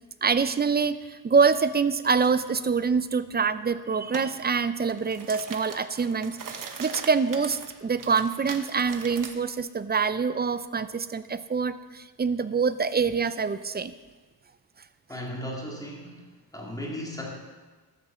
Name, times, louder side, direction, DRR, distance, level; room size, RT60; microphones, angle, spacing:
voice 1, 0.2-13.9, right 5 dB, 25° right, 14 dB, 0.5 m, -25 dB
sound 1, 4.1-4.3 4.8-9.3, right 6 dB, 50° right, 1.2 m, -40 dB
voice 2, 15.1-16.2 16.5-17.3, equal, 10° left, -2 dB, 2.5 m, -36 dB
13.0 x 7.0 x 6.8 m, 1.3 s
cardioid pair, 120°, 42 cm